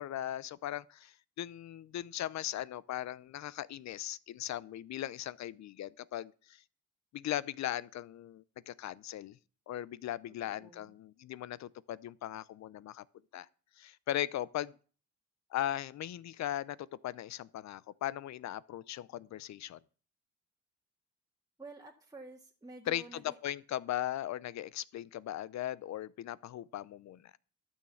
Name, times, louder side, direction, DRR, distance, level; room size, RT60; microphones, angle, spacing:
voice 1, 0.0-6.6 7.1-9.4 9.7-13.0 13.3-13.5 13.8-14.8 15.5-19.8 22.9-27.3, left 12 dB, 65° left, 0.7 m, -38 dB
voice 2, 10.5-10.9 21.6-23.4, right 2 dB, 10° right, 1.8 m, -50 dB
12.0 x 6.4 x 7.2 m
cardioid pair, 90°, 30 cm